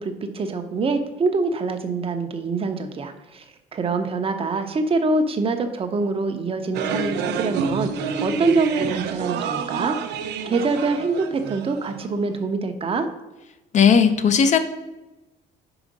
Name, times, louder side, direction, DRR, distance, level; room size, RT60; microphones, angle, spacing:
voice 1, 0.0-3.4 3.7-13.1, right 3 dB, 35° right, 7 dB, 0.8 m, -25 dB
sound 1, 6.7-12.2, right 6 dB, 80° right, 0.6 m, -28 dB
voice 2, 13.7-14.6, left 6 dB, 45° left, 10 dB, 0.7 m, -16 dB
5.0 x 4.9 x 5.2 m, 1.0 s
cardioid pair, 110°, 17 cm